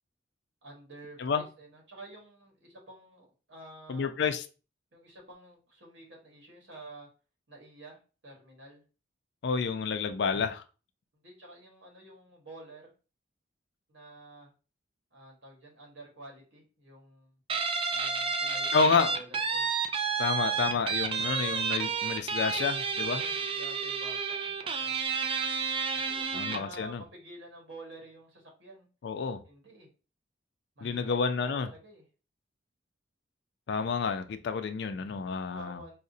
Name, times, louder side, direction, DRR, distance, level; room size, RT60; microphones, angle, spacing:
voice 1, 0.6-4.1 4.9-7.1 7.5-8.8 11.1-12.9 13.9-14.5 15.1-17.3 17.9-19.7 23.0-25.0 25.9-28.9 29.4-29.9 30.7-32.0 35.5-36.0, right 2 dB, 70° right, 1.5 m, -50 dB
voice 2, 3.9-4.4 9.4-10.6 18.7-19.1 20.2-23.2 26.3-27.0 29.0-29.4 30.8-31.7 33.7-35.8, left 5 dB, 65° left, 0.4 m, -29 dB
Guitar, 17.5-26.7, right 5 dB, 30° right, 0.3 m, -31 dB
4.8 x 2.1 x 2.6 m
head